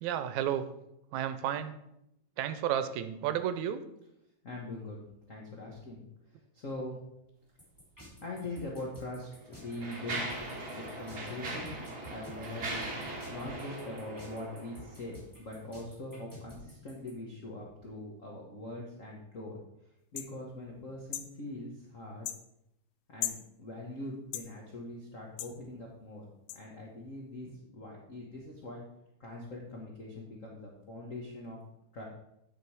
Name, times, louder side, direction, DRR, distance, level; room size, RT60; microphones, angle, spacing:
voice 1, 0.0-0.7 1.1-1.7 2.4-3.8, right 10 dB, 80° right, 11 dB, 2.0 m, -32 dB
voice 2, 4.4-5.0 5.3-7.0 8.2-10.3 10.7-11.7 12.1-12.8 13.3-19.6 20.1-22.3 23.1-26.3 26.5-28.8 29.2-31.6 31.9-32.0, left 2 dB, 50° left, -2 dB, 0.9 m, -42 dB
sound 1, 7.6-17.1, right 1 dB, 5° left, 2.8 m, -51 dB
Mechanisms, 8.4-8.6 9.3-15.1, right 2 dB, 40° right, 1.8 m, -40 dB
sound 2, 20.2-20.3 21.1-21.3 22.2-22.4 23.2-23.4 24.3-24.5 25.4-25.5 26.5-26.6, left 12 dB, 90° left, 1.4 m, -36 dB
9.7 x 5.4 x 4.7 m, 0.81 s
omnidirectional pair, 3.3 m